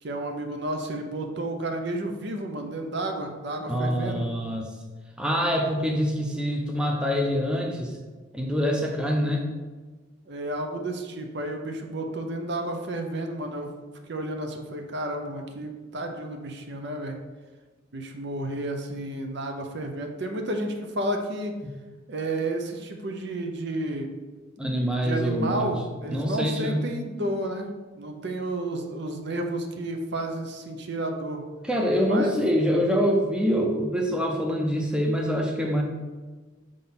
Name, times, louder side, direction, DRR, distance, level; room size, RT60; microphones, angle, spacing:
voice 1, 0.0-4.3 10.3-13.7 14.1-17.2 17.9-21.5 22.1-24.1 25.0-27.7 28.0-31.4 32.1-32.4, right 1 dB, 60° right, 4 dB, 0.7 m, -31 dB
voice 2, 3.6-4.7 5.2-8.0 8.3-9.5 21.6-21.7 24.6-25.7 26.1-26.9 31.6-35.8, equal, 5° right, 0 dB, 0.6 m, -25 dB
5.2 x 3.8 x 5.9 m, 1.3 s
head